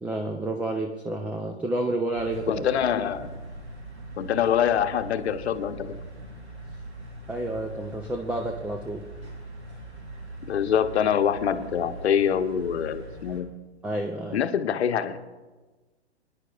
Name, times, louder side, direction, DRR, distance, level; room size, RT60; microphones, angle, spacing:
voice 1, 0.0-2.6 7.3-9.0 13.8-14.4, right 2 dB, 5° right, 3 dB, 0.4 m, -30 dB
sound 1, 2.1-13.4, right 2 dB, 85° right, 3.3 m, -41 dB
voice 2, 2.5-3.3 4.2-6.0 10.5-13.5 14.3-15.2, left 8 dB, 70° left, 8 dB, 0.9 m, -25 dB
25.0 x 10.0 x 2.3 m, 1.2 s
hypercardioid pair, 110°, 34 cm